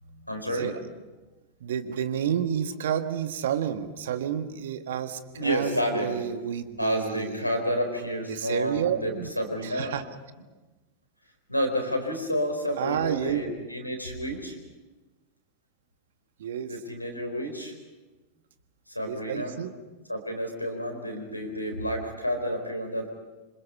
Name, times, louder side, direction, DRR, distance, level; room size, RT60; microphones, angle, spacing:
voice 1, 0.0-0.7 5.4-6.2 6.8-9.9 11.5-14.6 16.7-17.7 18.9-19.6 20.1-23.1, equal, 90° left, 4 dB, 4.5 m, -30 dB
voice 2, 0.6-0.9 1.6-7.4 8.3-9.3 9.6-10.0 12.8-13.4 16.4-16.7 19.0-19.7, right 9 dB, 60° right, 10 dB, 1.6 m, -30 dB
27.0 x 26.5 x 5.6 m, 1.2 s
figure-of-eight pair, 90°, 0 cm